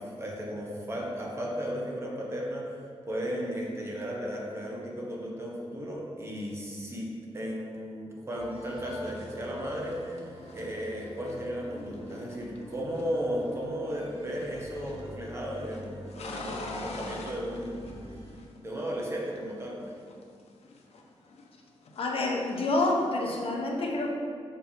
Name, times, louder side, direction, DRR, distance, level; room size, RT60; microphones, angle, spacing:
voice 1, 0.0-17.8 18.6-20.0, equal, 25° right, -2 dB, 1.2 m, -35 dB
sound 1, 8.3-18.3, equal, 65° right, 2.0 m, -47 dB
sound 2, 8.9-13.8 14.1-15.1 15.3-18.8 19.1-21.5 21.8-23.5, left 2 dB, 85° left, 0.8 m, -45 dB
sound 3, 11.8-19.4, equal, 5° left, 0.9 m, -52 dB
voice 2, 22.0-24.1, left 2 dB, 60° left, 0 dB, 1.0 m, -28 dB
6.8 x 5.4 x 5.2 m, 2.2 s
wide cardioid pair, 165°, 11 cm